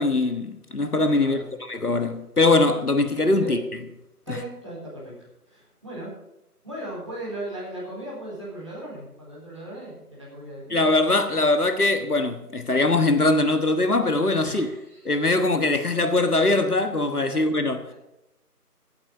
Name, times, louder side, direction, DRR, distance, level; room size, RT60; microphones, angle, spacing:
voice 1, 0.0-1.4 1.7-3.6 10.7-14.7 15.0-17.8, left 2 dB, 70° left, 1.5 m, -21 dB
voice 2, 4.3-5.1 5.5-6.1 6.6-10.9 14.4-15.2, right 1 dB, 20° right, 4.1 m, -37 dB
15.5 x 8.9 x 5.6 m
figure-of-eight pair, 180°, 47 cm